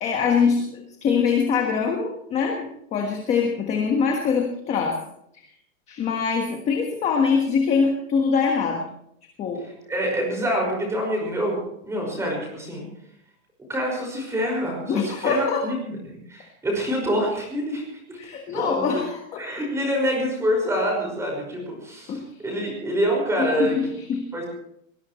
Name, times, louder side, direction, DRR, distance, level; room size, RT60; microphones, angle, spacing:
voice 1, 0.0-5.0 5.3-5.5 5.9-8.8 9.4-9.7 14.9-15.7 18.2-19.4 22.1-22.2 23.4-24.2, left 5 dB, 15° left, 2 dB, 1.5 m, -23 dB
voice 2, 9.9-12.9 13.7-16.0 16.3-17.8 18.1-18.2 18.5-19.0 19.4-23.8 24.3-24.5, equal, 5° right, 0 dB, 5.5 m, -26 dB
23.0 x 20.0 x 3.2 m, 0.74 s
supercardioid pair, 180°, 42 cm